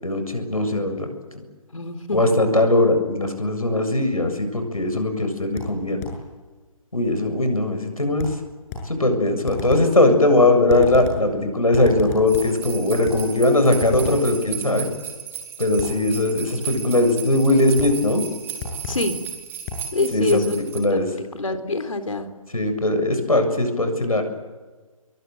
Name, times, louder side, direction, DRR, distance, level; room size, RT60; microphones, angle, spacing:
voice 1, 0.0-1.1 2.1-6.0 6.9-8.3 8.9-14.9 15.6-18.2 20.1-21.1 22.5-24.2, left 2 dB, 85° left, 7 dB, 7.3 m, -20 dB
voice 2, 1.7-2.2 18.9-19.2 19.9-20.6 20.9-22.3, left 3 dB, 70° left, 8 dB, 3.9 m, -25 dB
sound 1, 5.6-6.3 8.2-9.0 9.5-10.0 10.7-11.3 11.7-12.6 13.0-13.3 13.8-14.3 15.8-16.1 17.8-18.1 18.6-19.1 19.7-19.9, left 3 dB, 25° left, 7.8 m, -32 dB
sound 2, 12.3-20.8, right 9 dB, 10° right, 3.0 m, -35 dB
27.5 x 23.0 x 9.2 m, 1.3 s
figure-of-eight pair, 145°, 18 cm